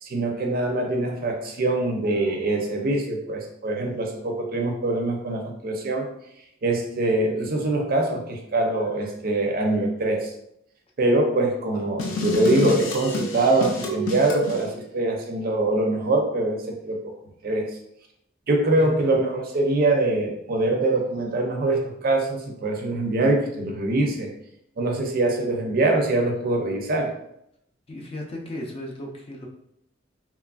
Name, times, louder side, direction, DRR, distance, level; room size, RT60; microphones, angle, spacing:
voice 1, 0.0-6.1 6.6-10.3 11.0-17.1 17.4-17.7 18.5-24.3 24.8-27.1, right 2 dB, 50° right, 2 dB, 0.5 m, -23 dB
sound 1, 12.0-14.6, left 1 dB, 85° left, 0.5 m, -28 dB
voice 2, 27.9-29.5, left 1 dB, 30° left, 0 dB, 0.4 m, -35 dB
3.0 x 2.4 x 2.3 m, 0.76 s
head